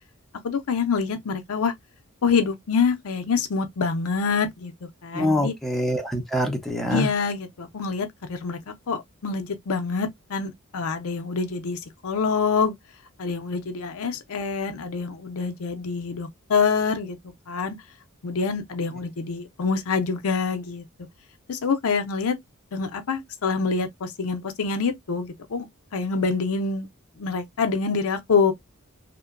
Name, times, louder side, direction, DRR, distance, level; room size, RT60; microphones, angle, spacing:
voice 1, 0.4-1.7 2.2-4.7 5.0-5.5 6.9-12.7 13.2-17.2 17.5-17.8 18.2-20.8 21.5-22.3 22.7-25.7 25.9-26.9 27.2-28.5, left 5 dB, 70° left, 0.5 m, -26 dB
voice 2, 5.1-7.1, left 1 dB, ahead, 0.6 m, -25 dB
2.9 x 2.1 x 2.3 m
head